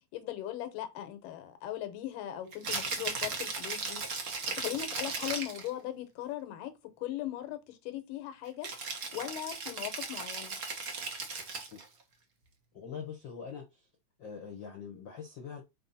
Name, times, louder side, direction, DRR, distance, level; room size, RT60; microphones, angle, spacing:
voice 1, 0.1-4.0 4.6-6.7 7.0-8.7 9.1-10.6, left 13 dB, 90° left, 2.6 m, -39 dB
Rattle (instrument), 2.5-5.7 8.6-11.9, right 4 dB, 65° right, 0.8 m, -37 dB
voice 2, 12.7-13.9 14.2-15.6, left 6 dB, 60° left, 1.2 m, -43 dB
5.5 x 4.6 x 4.1 m
omnidirectional pair, 3.7 m